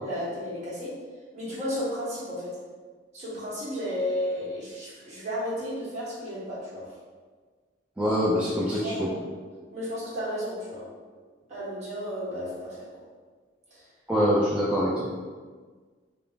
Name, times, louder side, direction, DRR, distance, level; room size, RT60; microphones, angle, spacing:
voice 1, 0.0-1.0 1.3-2.6 3.1-6.9 8.7-9.2 9.7-10.9 11.5-13.0 13.7-13.8, equal, 40° right, -9 dB, 1.3 m, -33 dB
voice 2, 8.0-9.1 14.1-15.1, equal, 5° right, -8 dB, 0.4 m, -24 dB
3.4 x 2.4 x 3.7 m, 1.5 s
head